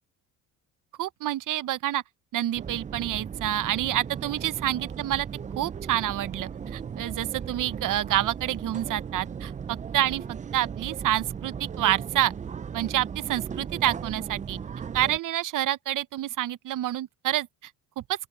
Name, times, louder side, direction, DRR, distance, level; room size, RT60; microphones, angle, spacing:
voice 1, 1.0-2.0 2.3-5.3 5.6-10.2 10.5-12.3 12.7-14.6 14.9-17.5 18.0-18.1, right 13 dB, 55° right, 0.8 m, -28 dB
sound 1, 2.5-15.2, right 7 dB, 20° right, 0.4 m, -37 dB
open air
cardioid pair, 95°, 37 cm